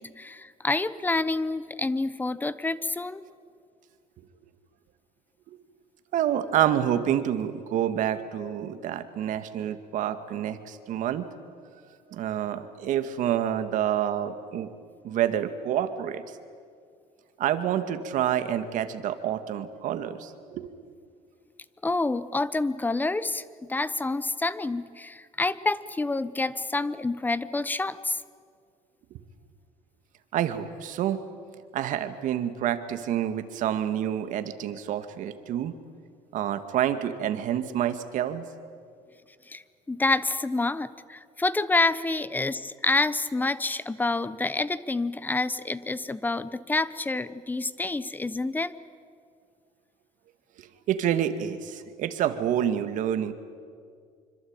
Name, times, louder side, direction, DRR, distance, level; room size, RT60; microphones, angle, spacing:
voice 1, 0.0-3.2 21.8-23.4 23.7-28.2 39.5-48.7, left 3 dB, 10° left, 16 dB, 0.9 m, -28 dB
voice 2, 6.1-11.3 12.1-14.7 15.0-16.2 17.4-20.7 30.3-31.2 31.7-35.7 36.3-38.5 50.6-53.3, right 10 dB, 65° right, 9 dB, 2.1 m, -28 dB
26.0 x 25.0 x 8.9 m, 2.2 s
cardioid pair, 130°, 14 cm